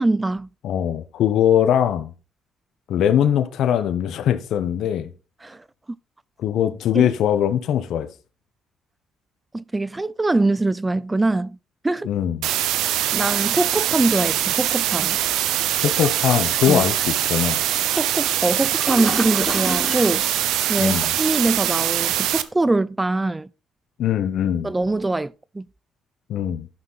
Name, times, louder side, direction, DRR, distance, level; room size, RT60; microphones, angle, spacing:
voice 1, 0.0-0.5 5.4-5.6 6.9-7.1 9.5-11.6 11.8-12.1 13.1-15.2 16.7-16.8 17.9-20.2 20.7-23.5 24.6-25.7, right 2 dB, 15° right, 0.4 m, -23 dB
voice 2, 0.6-2.1 2.9-5.1 6.4-8.1 12.0-12.5 15.8-17.6 20.8-21.1 24.0-24.7 26.3-26.7, left 10 dB, 75° left, 1.0 m, -21 dB
sound 1, 12.4-22.4, right 12 dB, 80° right, 0.7 m, -23 dB
Toilet flush, 15.7-21.5, left 1 dB, 5° left, 1.9 m, -34 dB
12.0 x 5.8 x 4.1 m
cardioid pair, 80°, 0 cm